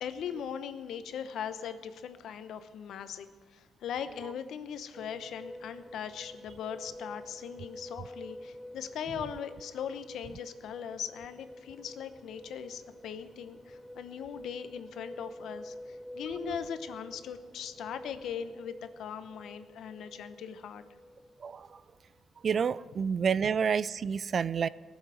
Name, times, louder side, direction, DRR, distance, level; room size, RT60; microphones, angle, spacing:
voice 1, 0.0-20.8, left 8 dB, 80° left, 11 dB, 0.9 m, -40 dB
sound 1, 4.9-22.2, left 1 dB, ahead, 0.6 m, -48 dB
voice 2, 21.4-21.8 22.4-24.7, right 6 dB, 45° right, 19 dB, 0.3 m, -29 dB
19.5 x 7.3 x 7.9 m, 1.5 s
cardioid pair, 120°, 0 cm